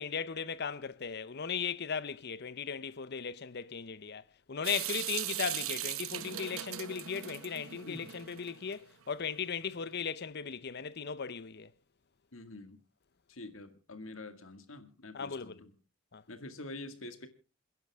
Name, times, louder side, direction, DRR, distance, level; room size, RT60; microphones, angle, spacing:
voice 1, 0.0-11.7 15.1-15.5 16.1-16.2, left 6 dB, 55° left, 0.7 m, -37 dB
Water tap faucet / Sink (filling or washing) / Drip, 4.6-8.7, right 12 dB, 85° right, 0.9 m, -39 dB
voice 2, 12.3-12.8 13.3-15.7 16.3-17.3, left 2 dB, 75° left, 2.0 m, -46 dB
28.0 x 10.5 x 3.5 m
head